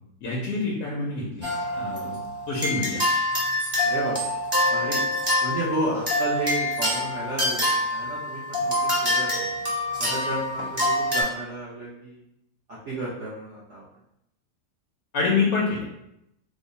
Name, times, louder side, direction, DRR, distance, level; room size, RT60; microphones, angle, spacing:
voice 1, 0.2-1.5 1.8-2.2 2.5-3.0 15.1-15.9, left 4 dB, 70° left, -3 dB, 0.7 m, -26 dB
sound 1, 1.4-11.2, left 1 dB, 20° right, 0.7 m, -26 dB
voice 2, 3.8-4.2 4.7-5.0 5.4-9.5 10.0-12.2 12.7-13.8, right 1 dB, 70° right, -6 dB, 0.6 m, -32 dB
3.0 x 2.0 x 3.9 m, 0.82 s
omnidirectional pair, 1.9 m